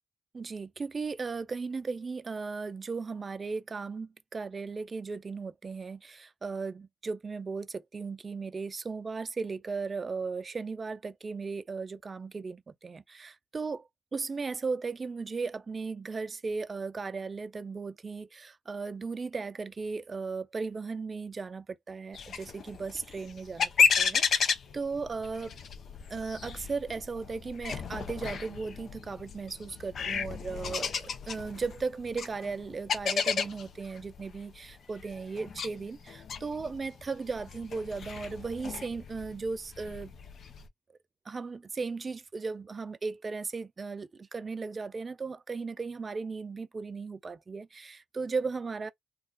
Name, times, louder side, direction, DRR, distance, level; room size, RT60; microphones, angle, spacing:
voice 1, 0.3-25.6 26.1-40.1 41.3-48.9, right 4 dB, 35° right, 0.4 m, -36 dB
sound 1, 22.1-40.7, left 6 dB, 55° left, 0.6 m, -33 dB
2.4 x 2.4 x 3.7 m
cardioid pair, 90°, 0 cm